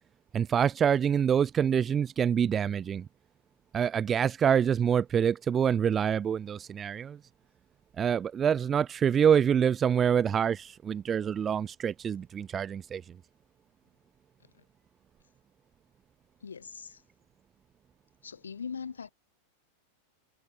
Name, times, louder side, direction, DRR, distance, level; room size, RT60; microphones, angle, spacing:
voice 1, 0.3-3.1 3.7-7.2 8.0-13.2, right 8 dB, 25° right, 0.4 m, -26 dB
voice 2, 16.4-17.0 18.2-19.1, left 6 dB, 70° left, 1.1 m, -40 dB
figure-of-eight pair, 90°, 0 cm